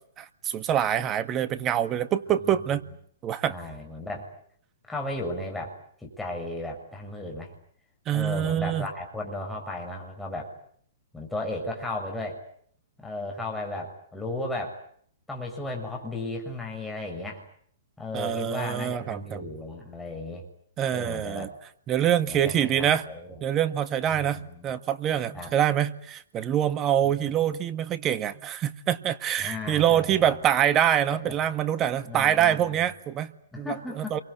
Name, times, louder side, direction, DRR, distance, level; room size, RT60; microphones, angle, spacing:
voice 1, 0.2-2.8 3.2-3.5 8.1-8.9 18.1-19.4 20.8-21.5 21.9-23.0 23.4-33.3 33.6-34.2, right 10 dB, 25° right, 12 dB, 1.7 m, -25 dB
voice 2, 3.5-4.3 4.9-7.5 8.1-10.5 11.1-12.4 13.0-14.8 15.3-17.4 18.0-20.4 20.9-21.5 22.3-23.4 24.1-24.7 25.3-25.5 27.0-27.1 29.4-30.3 31.1-31.3 32.0-32.8 33.5-34.2, left 2 dB, 5° left, 0 dB, 6.9 m, -35 dB
28.0 x 24.0 x 8.4 m, 0.63 s
hypercardioid pair, 120°, 0 cm